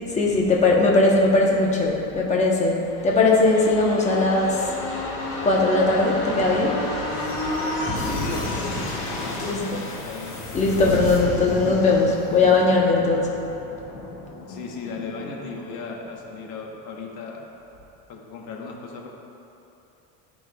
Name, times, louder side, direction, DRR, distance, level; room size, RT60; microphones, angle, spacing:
voice 1, 0.1-4.8 5.4-7.9 9.4-9.8 10.5-13.3, left 3 dB, 20° left, -2 dB, 1.0 m, -20 dB
sound 1, 2.9-16.4 16.7-16.8, left 2 dB, 35° left, 1.4 m, -31 dB
voice 2, 8.0-9.7 10.0-10.4 14.5-17.5 18.1-19.1, left 4 dB, 65° left, 0 dB, 1.2 m, -36 dB
13.5 x 4.5 x 2.3 m, 2.9 s
cardioid pair, 155°, 34 cm